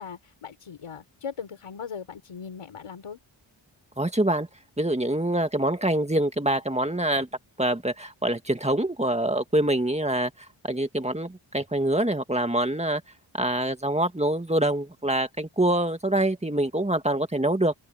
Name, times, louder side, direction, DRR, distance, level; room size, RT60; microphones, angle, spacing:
voice 1, 0.0-3.2, left 6 dB, 90° left, 5.2 m, -39 dB
voice 2, 4.0-4.5 4.8-7.3 7.6-13.0 13.3-17.7, right 1 dB, 15° right, 2.1 m, -25 dB
open air
cardioid pair, 70°, 50 cm